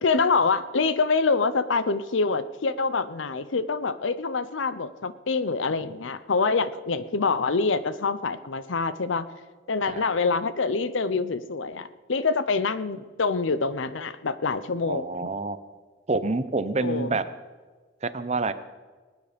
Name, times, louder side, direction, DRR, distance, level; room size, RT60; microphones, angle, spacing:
voice 1, 0.0-9.3 9.7-15.3 16.8-17.2, left 4 dB, 85° left, 15 dB, 0.7 m, -26 dB
voice 2, 14.9-15.6 16.1-17.2 18.0-18.5, right 3 dB, 35° right, 13 dB, 0.7 m, -27 dB
20.5 x 9.3 x 5.2 m, 1.4 s
head